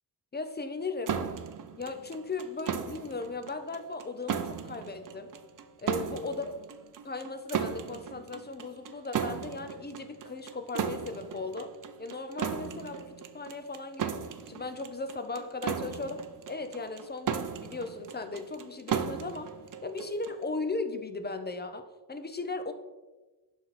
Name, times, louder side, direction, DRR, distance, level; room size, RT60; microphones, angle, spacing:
voice 1, 0.3-1.2 1.8-5.3 5.8-6.5 7.0-11.7 12.0-14.2 14.5-19.5 19.8-22.7, left 3 dB, 25° left, 9 dB, 0.5 m, -37 dB
sound 1, 1.1-20.4, right 7 dB, 50° right, 0.5 m, -36 dB
11.0 x 4.2 x 4.0 m, 1.2 s
wide cardioid pair, 175°, 43 cm